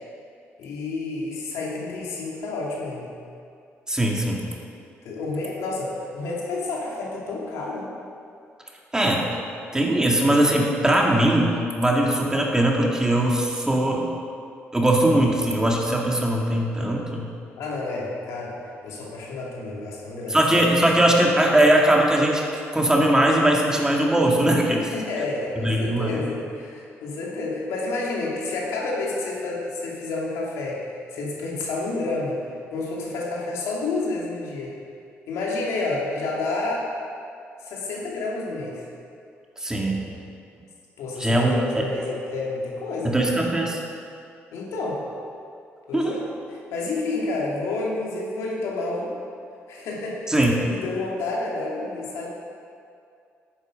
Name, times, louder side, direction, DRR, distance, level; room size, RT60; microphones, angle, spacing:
voice 1, 0.6-3.1 5.0-7.9 17.6-18.6 18.8-20.4 24.9-34.7 35.3-36.9 37.6-38.9 41.0-43.2 44.5-45.0 45.9-46.2 46.5-49.1 49.7-52.3, left 3 dB, 80° left, -3 dB, 2.5 m, -30 dB
voice 2, 3.9-4.4 8.9-9.3 9.7-14.1 14.7-17.3 20.3-22.4 22.7-24.9 25.6-26.1 39.6-40.0 41.2-41.9 43.0-43.8 45.9-46.2 50.3-50.6, right 1 dB, 15° right, -1 dB, 2.1 m, -20 dB
11.0 x 9.0 x 5.1 m, 2.4 s
cardioid pair, 75°, 5 cm